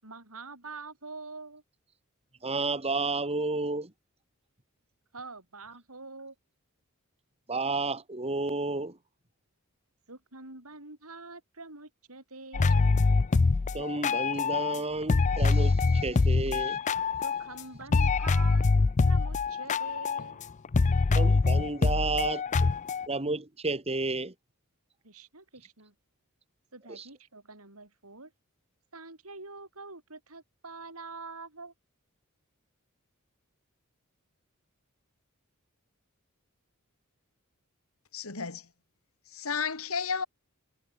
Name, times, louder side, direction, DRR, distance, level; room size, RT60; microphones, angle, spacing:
voice 1, 0.0-1.6 5.1-6.4 10.1-13.0 17.2-18.7 19.0-20.4 25.0-25.9 26.7-28.3 28.9-31.7, right 3 dB, 75° right, 7.8 m, -45 dB
voice 2, 2.4-3.9 7.5-9.0 13.7-16.8 21.1-22.4 23.1-24.3 26.9-27.1, right 3 dB, 30° right, 2.5 m, -31 dB
Hip Hop Beat, 12.5-14.8 15.1-17.6 17.9-23.1, left 4 dB, 35° left, 0.4 m, -24 dB
voice 3, 38.1-38.7 39.3-40.3, left 5 dB, 70° left, 2.1 m, -32 dB
head